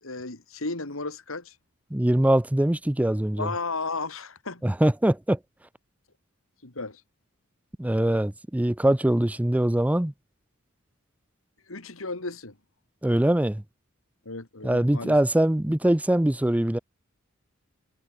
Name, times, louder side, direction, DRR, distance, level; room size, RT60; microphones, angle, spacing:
voice 1, 0.0-1.6 3.4-4.6 6.6-7.0 11.6-12.5 14.2-15.2, left 3 dB, 70° left, 2.8 m, -34 dB
voice 2, 1.9-3.5 4.6-5.4 7.8-10.1 13.0-13.6 14.6-16.8, right 1 dB, 5° right, 0.5 m, -22 dB
head